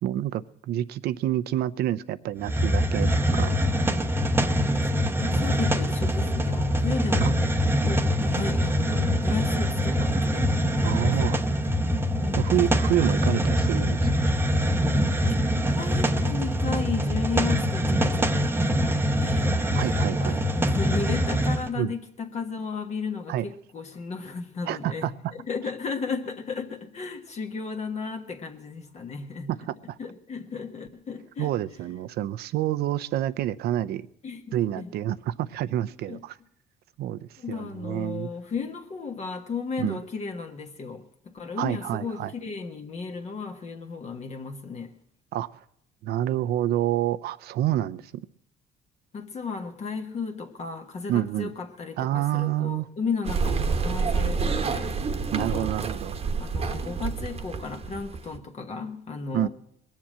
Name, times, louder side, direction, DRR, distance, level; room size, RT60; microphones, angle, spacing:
voice 1, 0.0-3.5 7.2-7.3 10.8-11.4 12.4-14.4 19.7-20.4 21.8-21.9 23.3-23.4 24.7-25.1 29.5-30.0 31.4-34.1 34.5-36.4 37.0-38.3 39.8-40.0 41.6-42.3 45.3-45.5 46.0-48.1 51.1-51.5 52.0-52.9 55.3-56.2 59.3-59.5, right 12 dB, 70° right, 0.6 m, -28 dB
Hiss, 2.4-21.7, equal, 15° right, 0.8 m, -24 dB
voice 2, 5.1-7.4 7.8-11.3 12.2-12.5 14.9-15.4 15.7-19.6 20.2-29.5 30.0-31.5 34.2-34.9 36.1-36.2 37.4-45.0 49.1-55.1 55.4-55.9 56.4-59.5, left 5 dB, 40° left, 1.4 m, -34 dB
sound 1, 53.2-58.4, right 5 dB, 35° right, 1.1 m, -28 dB
21.0 x 7.4 x 7.5 m
cardioid pair, 110°, 17 cm